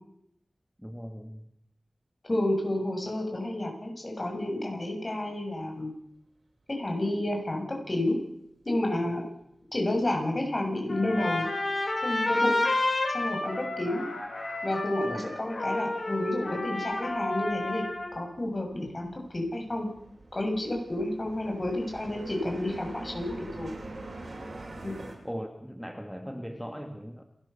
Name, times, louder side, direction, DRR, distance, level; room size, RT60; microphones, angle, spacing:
voice 1, 0.8-1.4 15.0-15.3 25.2-27.2, equal, ahead, 5 dB, 2.0 m, -39 dB
voice 2, 2.3-5.9 6.7-8.2 8.7-9.2 9.7-11.4 12.0-12.6 13.1-14.0 14.6-17.8 18.1-19.9 20.3-23.8 24.8-25.0, left 1 dB, 40° left, 2 dB, 7.0 m, -30 dB
Trumpet, 10.9-18.2, left 2 dB, 55° left, 6.6 m, -30 dB
sound 1, 12.3-12.4 12.5-13.8 14.0-25.1, right 2 dB, 65° right, 6.7 m, -45 dB
29.5 x 12.5 x 7.1 m, 0.75 s
wide cardioid pair, 55°, 0 cm